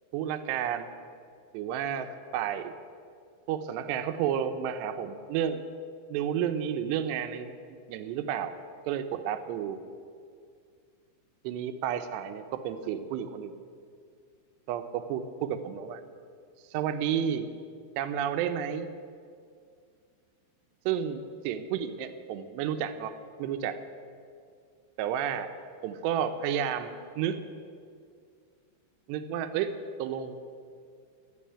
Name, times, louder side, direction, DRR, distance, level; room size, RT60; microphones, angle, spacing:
voice 1, 0.1-0.9 1.5-2.7 3.5-5.6 6.1-7.5 7.9-8.5 8.9-9.8 11.4-13.6 14.7-16.0 16.7-17.5 18.0-18.9 20.9-23.8 25.0-25.5 25.8-27.4 29.1-29.7 30.0-30.4, right 9 dB, 75° right, 9 dB, 2.7 m, -31 dB
13.0 x 9.1 x 9.9 m, 2.2 s
omnidirectional pair, 5.5 m